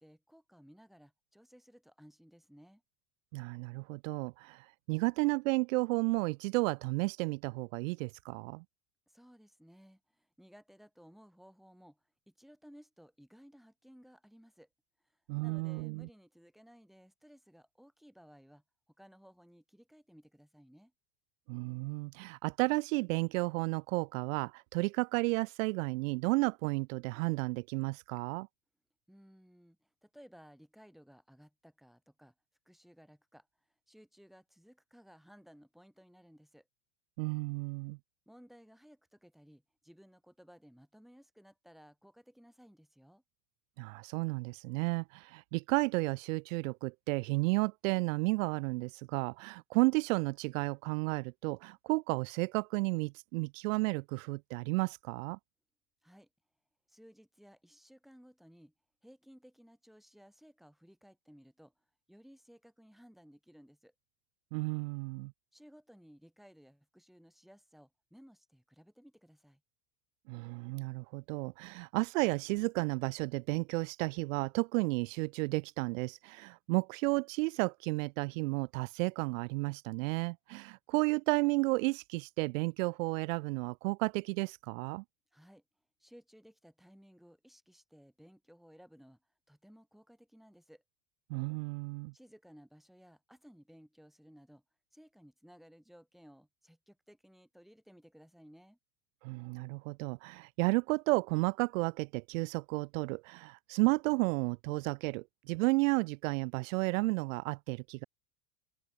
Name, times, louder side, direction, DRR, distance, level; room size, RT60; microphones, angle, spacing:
voice 1, 0.0-2.8 9.1-14.7 15.0-18.6 19.0-20.9 29.1-32.3 32.7-33.5 33.9-36.7 38.3-43.2 56.0-56.3 56.9-58.7 59.0-63.9 65.5-69.6 85.3-85.6 86.0-89.2 89.5-90.8 92.1-94.6 94.9-98.8, equal, ahead, 5.6 m, -59 dB
voice 2, 3.3-8.6 15.3-16.1 21.5-28.5 37.2-38.0 43.8-55.4 64.5-65.3 70.3-85.0 91.3-92.1 99.2-108.0, right 25 dB, 75° right, 1.4 m, -32 dB
open air
cardioid pair, 155°, 39 cm